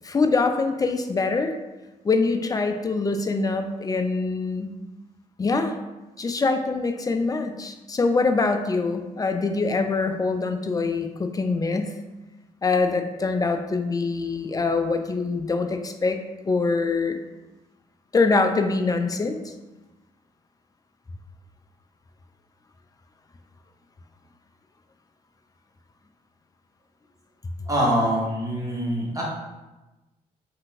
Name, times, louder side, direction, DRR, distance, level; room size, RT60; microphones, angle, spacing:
voice 1, 0.0-1.5 2.0-4.7 5.4-5.7 6.2-11.9 12.6-16.2 16.4-17.2 18.1-19.4, left 3 dB, 20° left, 6 dB, 0.4 m, -24 dB
voice 2, 27.7-29.2, equal, 15° right, -5 dB, 1.3 m, -24 dB
3.5 x 2.8 x 2.6 m, 1.1 s
hypercardioid pair, 50°, 20 cm